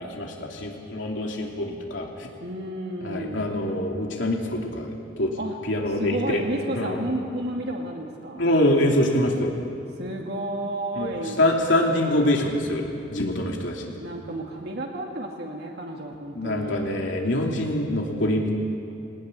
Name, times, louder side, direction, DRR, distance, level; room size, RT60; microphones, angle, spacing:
voice 1, 0.0-2.3 3.0-5.3 5.6-6.4 6.8-7.0 8.4-9.5 11.0-11.1 11.4-14.0 16.3-18.5, left 1 dB, 85° left, 0 dB, 2.8 m, -25 dB
voice 2, 2.4-3.5 5.4-5.6 6.0-8.5 10.0-11.4 14.0-16.9, right 1 dB, 60° right, 0 dB, 2.3 m, -32 dB
20.0 x 19.5 x 9.8 m, 2.6 s
head